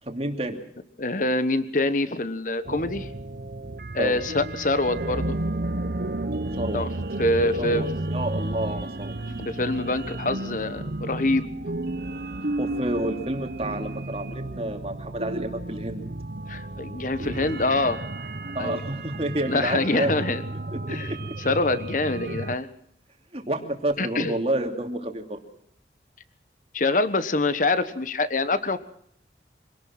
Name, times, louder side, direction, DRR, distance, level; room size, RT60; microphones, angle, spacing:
voice 1, 0.0-0.6 4.0-4.2 6.5-6.8 7.6-9.2 12.6-16.0 18.5-20.2 20.7-21.2 23.3-25.4, right 1 dB, 35° right, 4 dB, 2.9 m, -29 dB
voice 2, 1.0-3.1 3.9-5.4 6.7-6.9 7.2-7.9 9.4-11.5 16.5-18.0 18.6-18.8 19.4-20.4 20.9-21.2 21.4-22.7 24.0-24.4 26.7-28.8, left 2 dB, 45° left, 12 dB, 1.3 m, -25 dB
sound 1, 2.7-22.6, right 2 dB, 55° right, 1.0 m, -32 dB
25.5 x 18.5 x 6.0 m, 0.66 s
head